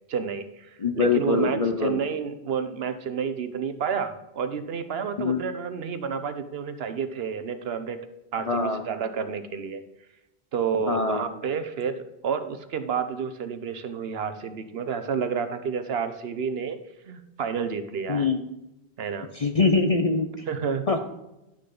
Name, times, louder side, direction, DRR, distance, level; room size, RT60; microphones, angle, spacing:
voice 1, 0.1-0.7 1.0-8.0 8.3-9.8 10.5-16.8 17.0-18.3 19.0-19.3 20.5-20.8, right 6 dB, 70° right, 10 dB, 1.0 m, -30 dB
voice 2, 0.8-2.0 5.2-5.4 8.5-8.8 10.9-11.2 18.1-18.4 19.3-20.4 20.9-21.0, left 4 dB, 40° left, 6 dB, 0.6 m, -23 dB
11.5 x 6.6 x 3.8 m, 0.94 s
omnidirectional pair, 1.1 m